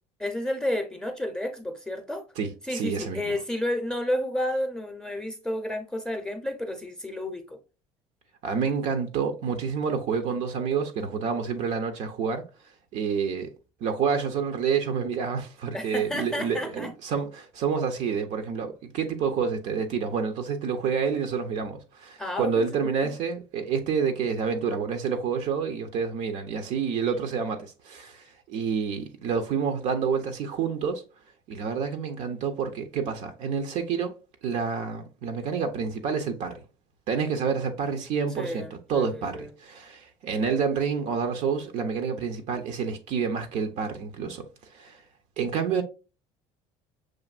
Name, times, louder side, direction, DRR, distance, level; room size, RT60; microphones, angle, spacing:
voice 1, 0.2-2.2 2.6-7.6 15.7-16.9 22.2-23.1 27.2-27.3 38.3-39.5, left 1 dB, 5° left, 0.7 m, -31 dB
voice 2, 2.7-3.3 8.4-12.4 12.9-13.5 13.8-31.0 31.5-34.2 34.4-36.6 37.1-44.4 44.7-45.0 45.4-45.8, right 6 dB, 65° right, 0.7 m, -28 dB
6.2 x 2.6 x 2.4 m
supercardioid pair, 105°, 13 cm